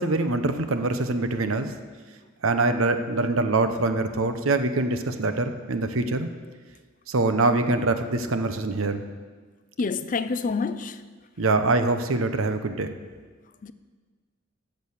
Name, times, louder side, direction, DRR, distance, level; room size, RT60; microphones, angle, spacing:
voice 1, 0.0-1.7 2.4-6.3 7.1-9.0 11.4-12.9, right 2 dB, 85° right, 0.9 m, -24 dB
voice 2, 9.8-11.0 13.6-13.7, left 4 dB, 40° left, 0.5 m, -27 dB
14.0 x 6.5 x 6.6 m
head